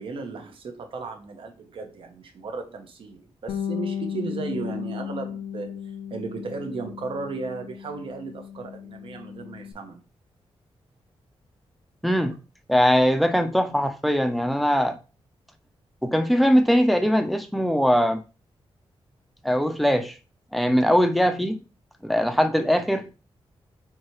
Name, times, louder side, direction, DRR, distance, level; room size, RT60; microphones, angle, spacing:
voice 1, 0.0-5.7 6.1-10.0, right 4 dB, 60° right, 0.7 m, -35 dB
Bass guitar, 3.5-9.7, left 8 dB, 80° left, 0.4 m, -35 dB
voice 2, 12.0-12.4 12.7-15.0 16.0-18.2 19.4-20.1 20.5-21.6 22.0-23.0, equal, ahead, 0.4 m, -21 dB
4.7 x 2.7 x 2.9 m
wide cardioid pair, 145°, 10 cm